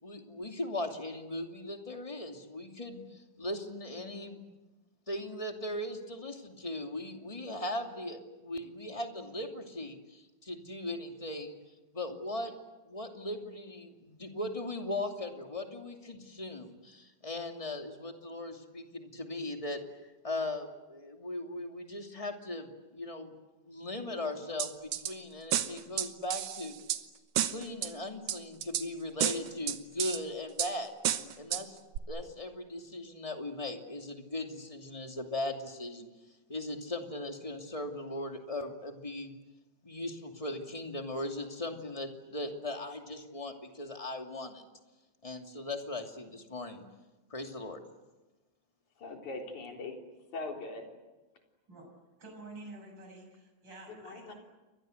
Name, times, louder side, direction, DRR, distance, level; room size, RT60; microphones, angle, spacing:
voice 1, 0.0-4.4 5.1-11.6 11.9-12.5 12.9-19.8 20.2-23.3 23.7-26.8 27.4-30.9 31.4-31.8 32.1-36.1 36.5-39.4 39.8-44.6 45.2-46.8 47.3-47.8, left 1 dB, 10° left, 3 dB, 2.4 m, -38 dB
sound 1, 24.6-25.1 25.5-27.0 27.4-27.9 28.3-28.9 29.2-30.2 30.6-30.7 31.0-31.6 32.0-32.1, right 11 dB, 90° right, 2.7 m, -31 dB
voice 2, 49.0-50.0 50.3-50.9 53.9-54.3, left 3 dB, 75° left, 2 dB, 5.3 m, -41 dB
voice 3, 52.2-54.4, right 2 dB, 35° right, 2 dB, 7.8 m, -49 dB
29.5 x 24.0 x 8.0 m, 1.1 s
omnidirectional pair, 3.4 m